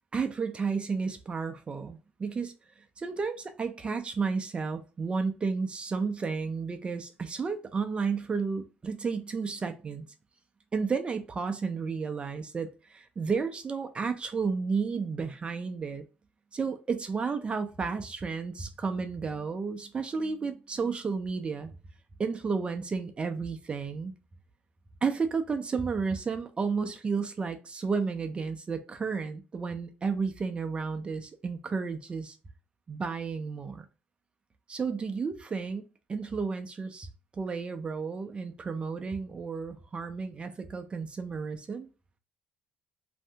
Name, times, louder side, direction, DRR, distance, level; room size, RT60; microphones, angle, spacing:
voice 1, 0.1-2.5 3.0-10.1 10.7-16.0 16.5-21.7 22.2-24.1 25.0-32.4 32.9-33.9 34.7-35.8 36.1-37.1 37.3-41.9, right 5 dB, 30° right, 0.4 m, -32 dB
2.7 x 2.5 x 3.2 m
cardioid pair, 110°, 4 cm